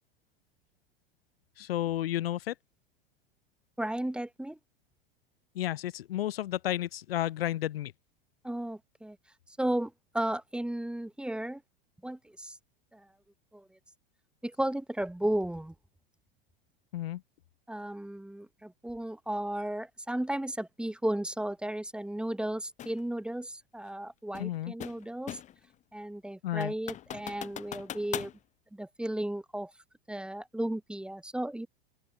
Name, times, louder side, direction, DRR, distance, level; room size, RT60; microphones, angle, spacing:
voice 1, 1.6-2.5 5.6-7.9 16.9-17.2 24.4-24.7 26.4-26.7, left 13 dB, 80° left, 0.5 m, -32 dB
voice 2, 3.8-4.6 8.4-9.2 9.6-11.6 12.0-12.5 12.9-13.0 13.5-13.6 14.4-15.7 17.7-25.4 25.9-28.3 28.7-29.7 30.1-31.7, right 1 dB, 5° right, 1.0 m, -34 dB
sound 1, 22.8-23.0 24.3-25.7 26.0-26.1 26.6-28.4, left 11 dB, 25° left, 0.6 m, -41 dB
open air
hypercardioid pair, 95°, 29 cm